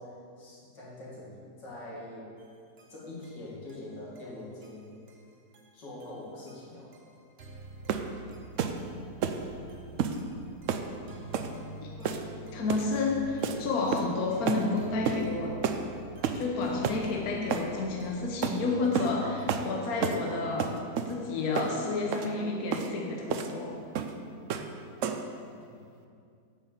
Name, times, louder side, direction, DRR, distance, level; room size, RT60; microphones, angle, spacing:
voice 1, 0.0-2.4 2.9-4.9 5.7-6.9 25.5-25.8, left 1 dB, 90° left, -7 dB, 3.0 m, -44 dB
sound 1, 2.4-19.9, right 2 dB, 45° right, 1.0 m, -48 dB
sound 2, 7.9-8.1 8.6-8.8 9.2-9.4 10.0-10.2 10.7-10.9 11.3-11.5 12.0-12.4 12.7-12.9 13.4-13.6 13.9-14.2 14.5-14.7 15.1-15.2 15.6-15.8 16.2-16.5 16.8-17.0 17.5-17.7 18.4-18.6 18.9-19.2 19.5-19.7 20.0-20.2 20.6-21.1 21.6-21.7 22.1-22.3 22.7-22.9 23.3-23.5 24.0-24.2 24.5-24.7 25.0-25.3, right 7 dB, 70° right, 0.7 m, -30 dB
voice 2, 11.8-15.6 16.3-20.7 21.0-23.7, left 3 dB, 60° left, 0 dB, 1.4 m, -30 dB
8.6 x 6.2 x 7.2 m, 2.4 s
omnidirectional pair, 1.9 m